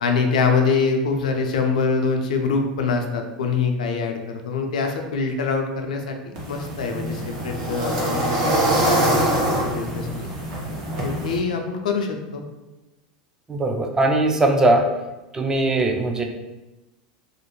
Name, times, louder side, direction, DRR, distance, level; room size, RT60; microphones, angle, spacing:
voice 1, 0.0-10.3 11.0-12.4, left 4 dB, 80° left, 4 dB, 0.4 m, -24 dB
sound 1, 6.4-11.4, right 1 dB, 65° right, 0.8 m, -24 dB
voice 2, 13.5-15.0 15.3-16.2, right 2 dB, 15° right, 3 dB, 0.4 m, -20 dB
2.4 x 2.1 x 3.0 m, 1.0 s
hypercardioid pair, 90°, 4 cm